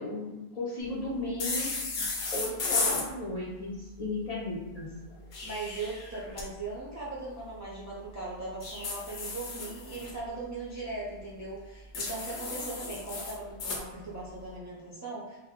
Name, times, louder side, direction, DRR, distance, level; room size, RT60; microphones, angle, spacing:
voice 1, 0.0-1.7 2.0-2.1 2.3-4.9, left 2 dB, 50° left, -6 dB, 0.5 m, -35 dB
sound 1, 1.4-3.1 5.1-6.5 8.6-10.1 11.9-13.8, left 3 dB, 80° left, 0.8 m, -34 dB
voice 2, 5.4-15.4, right 3 dB, 25° right, -7 dB, 0.3 m, -39 dB
2.1 x 2.0 x 3.5 m, 1.1 s
omnidirectional pair, 1.1 m